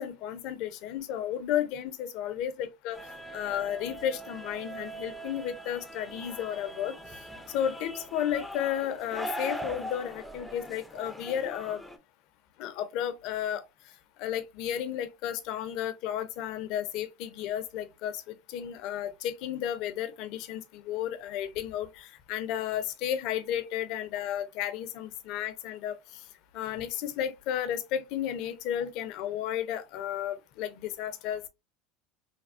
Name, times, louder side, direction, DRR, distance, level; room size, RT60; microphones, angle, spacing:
voice 1, 0.0-3.0 3.3-6.9 7.5-11.8 12.6-13.6 14.2-18.2 18.5-26.0 26.5-31.5, left 10 dB, 60° left, 0.5 m, -33 dB
sound 1, 2.9-12.0, equal, ahead, 0.4 m, -41 dB
3.3 x 2.0 x 2.4 m
supercardioid pair, 130°, 0 cm